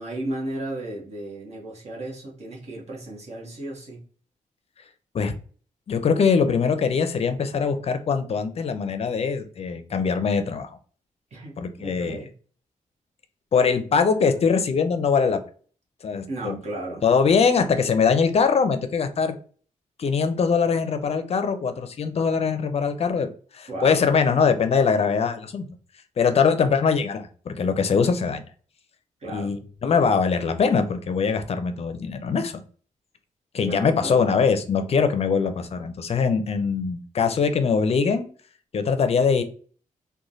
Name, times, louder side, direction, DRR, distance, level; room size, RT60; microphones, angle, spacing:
voice 1, 0.0-4.0 11.3-12.3 16.3-17.0 23.7-24.0 29.2-29.6 33.6-34.3, right 1 dB, 55° right, -3 dB, 1.0 m, -34 dB
voice 2, 5.9-10.7 11.6-12.2 13.5-15.4 16.0-16.6 17.0-19.4 20.0-23.3 23.5-25.7 26.2-28.4 29.3-32.6 33.5-38.2 38.7-39.4, left 5 dB, 50° left, 8 dB, 0.5 m, -22 dB
3.1 x 2.2 x 2.6 m, 0.42 s
cardioid pair, 95°, 14 cm